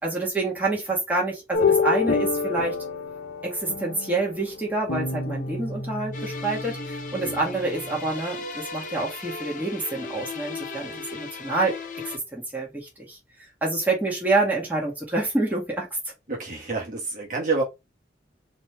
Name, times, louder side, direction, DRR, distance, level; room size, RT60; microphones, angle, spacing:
voice 1, 0.0-2.8 3.4-11.8 12.0-15.9, right 2 dB, 10° right, 1.9 m, -27 dB
sound 1, 1.5-8.1, left 4 dB, 85° left, 1.0 m, -28 dB
sound 2, 6.1-12.2, left 3 dB, 45° left, 0.8 m, -36 dB
voice 2, 16.3-17.6, right 3 dB, 45° right, 1.3 m, -28 dB
4.2 x 3.1 x 3.5 m
head